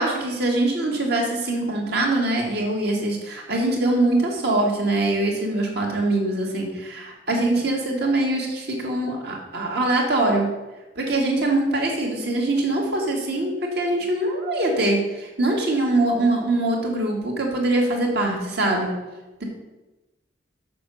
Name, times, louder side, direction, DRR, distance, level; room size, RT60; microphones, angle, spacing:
voice 1, 0.0-10.5 11.0-18.9, right 2 dB, 60° right, 0 dB, 2.1 m, -23 dB
6.9 x 6.7 x 6.3 m, 1.1 s
head